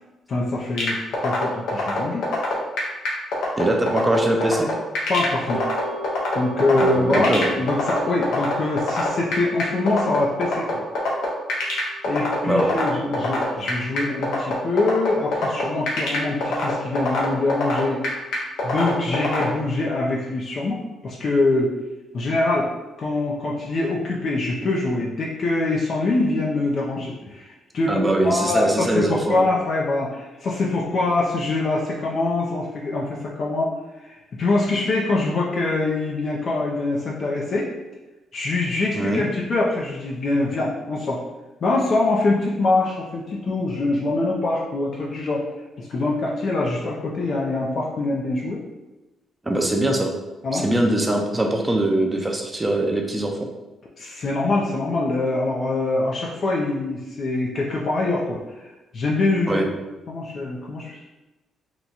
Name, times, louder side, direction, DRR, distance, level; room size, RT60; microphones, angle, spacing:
voice 1, 0.3-2.3 5.1-5.7 6.3-10.9 12.0-18.0 18.6-21.8 22.1-22.7 23.0-27.9 28.2-37.7 38.3-41.2 41.6-45.5 45.8-48.6 50.4-50.6 54.0-59.7 60.1-61.1, left 2 dB, 55° left, -3 dB, 0.5 m, -24 dB
sound 1, 0.8-19.4, left 3 dB, 85° left, 0.9 m, -24 dB
voice 2, 3.6-4.7 6.8-7.5 12.5-12.7 27.9-29.5 38.9-39.3 49.4-50.1 50.5-53.5 59.5-59.6, right 1 dB, 15° right, 2 dB, 0.6 m, -22 dB
sound 2, 5.5-15.8 16.1-16.2, right 2 dB, 75° right, 0.4 m, -41 dB
3.0 x 2.3 x 4.0 m, 1.1 s
cardioid pair, 90°, 0 cm